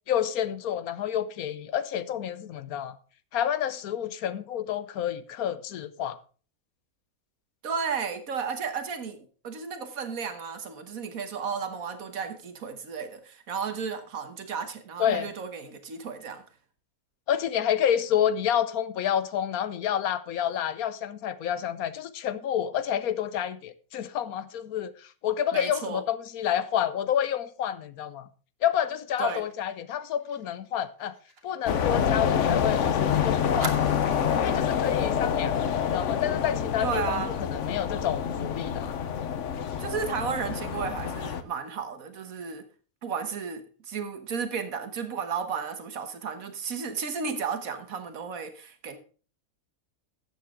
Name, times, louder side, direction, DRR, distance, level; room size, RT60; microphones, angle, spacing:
voice 1, 0.1-3.0 3.3-6.2 15.0-15.3 17.3-24.9 25.2-28.3 28.6-31.1 31.4-33.8 34.4-35.6 35.8-38.9, left 9 dB, 85° left, 1.2 m, -29 dB
voice 2, 7.6-16.4 25.5-26.0 29.2-29.4 36.8-37.3 39.8-42.7 43.0-49.0, right 6 dB, 70° right, 1.7 m, -33 dB
Fire, 29.3-32.7 33.0-33.1 33.6-34.6 35.0-35.1 35.5-35.7, right 3 dB, 45° right, 1.8 m, -42 dB
sound 1, 31.7-41.4, left 8 dB, 60° left, 1.1 m, -27 dB
13.0 x 8.5 x 3.6 m
omnidirectional pair, 1.5 m